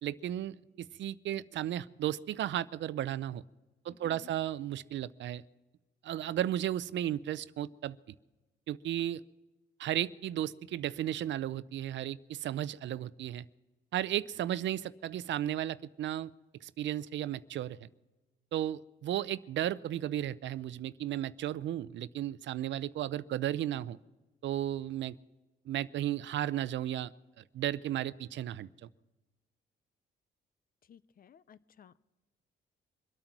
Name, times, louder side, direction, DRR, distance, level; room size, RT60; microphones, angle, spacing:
voice 1, 0.0-3.4 3.8-5.4 6.0-8.0 8.7-9.2 9.8-13.4 13.9-16.3 16.6-17.9 18.5-24.0 24.4-25.2 25.7-27.1 27.4-28.9, right 12 dB, 65° right, 18 dB, 0.6 m, -34 dB
voice 2, 3.9-4.3 30.9-32.0, left 8 dB, 45° left, 17 dB, 0.6 m, -56 dB
24.0 x 8.9 x 6.0 m, 1.1 s
cardioid pair, 90°, 20 cm